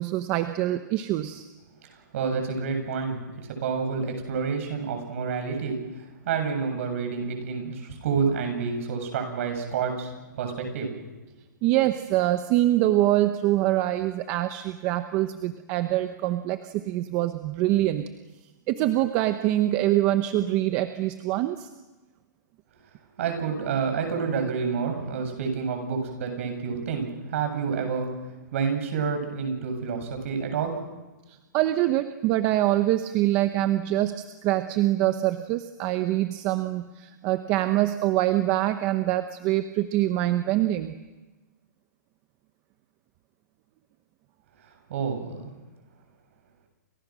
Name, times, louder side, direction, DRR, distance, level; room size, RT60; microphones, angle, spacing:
voice 1, 0.0-1.4 11.6-18.0 18.7-21.7 31.3-40.9, right 14 dB, 20° right, 9 dB, 0.9 m, -24 dB
voice 2, 1.9-10.9 23.2-28.1 28.5-30.8 44.9-45.5, right 5 dB, 45° right, 5 dB, 8.0 m, -29 dB
29.5 x 27.0 x 6.3 m, 1.1 s
hypercardioid pair, 170°, 10 cm